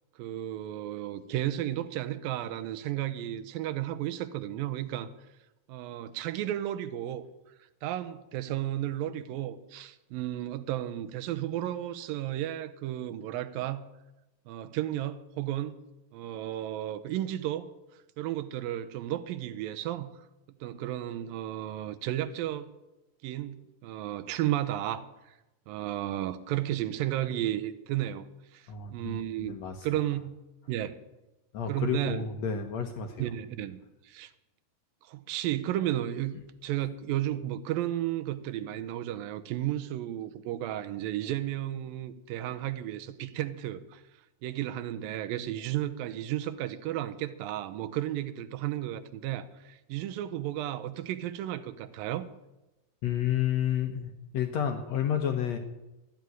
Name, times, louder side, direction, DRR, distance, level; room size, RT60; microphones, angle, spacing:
voice 1, 0.2-5.1 5.7-7.2 7.8-13.8 14.5-15.8 16.1-17.7 18.2-20.3 20.6-22.7 23.2-25.3 25.7-30.3 30.7-31.0 31.7-32.2 33.2-34.3 35.0-36.3 36.6-44.0 44.4-52.3, right 13 dB, 80° right, 2.5 m, -33 dB
voice 2, 28.7-29.9 31.5-33.3 53.0-55.6, left 8 dB, 70° left, 1.7 m, -30 dB
13.0 x 9.6 x 9.3 m
omnidirectional pair, 4.3 m